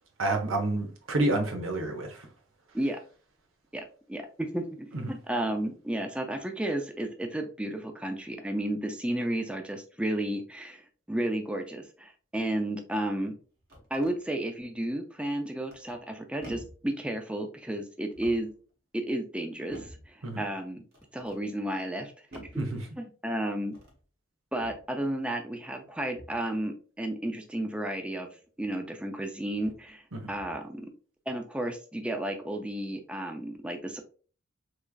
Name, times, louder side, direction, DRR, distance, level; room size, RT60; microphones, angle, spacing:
voice 1, 0.2-2.3 4.9-5.1 20.2-20.4 22.6-22.9 30.1-30.3, right 2 dB, 85° right, 0.9 m, -29 dB
voice 2, 3.7-13.3 13.9-18.5 18.9-20.8 21.1-22.3 22.5-22.6 23.0-23.8 24.5-28.3 28.6-30.9 31.3-34.0, right 1 dB, 5° right, 0.4 m, -32 dB
sound 1, 13.4-14.2 15.7-16.1 16.4-16.9 18.0-18.6 19.7-20.1 20.9-21.4 22.3-22.7 23.6-24.0 24.6-24.9 26.1-26.5 28.6-28.7 29.5-29.9 30.2-30.7, right 1 dB, 50° right, 1.1 m, -49 dB
3.5 x 3.2 x 2.2 m
head